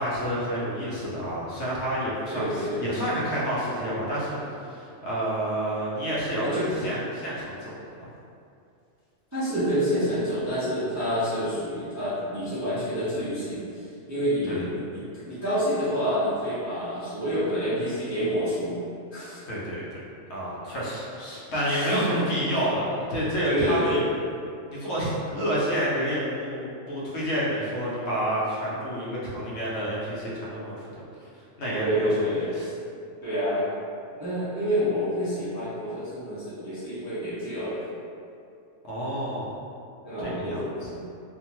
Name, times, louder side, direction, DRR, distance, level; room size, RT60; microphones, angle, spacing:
voice 1, 0.0-7.7 8.0-8.1 14.5-14.7 19.5-19.8 20.3-24.0 24.7-30.9 31.2-31.3 31.6-32.7 38.8-39.5 40.2-40.7, equal, 65° left, -7 dB, 0.8 m, -29 dB
voice 2, 2.3-2.8 6.4-6.7 9.3-18.8 19.1-19.4 21.7-22.3 23.4-24.0 31.7-32.4 33.2-33.6 34.2-37.7 40.0-41.0, equal, 25° right, -13 dB, 0.4 m, -28 dB
2.5 x 2.1 x 2.9 m, 2.6 s
omnidirectional pair, 1.3 m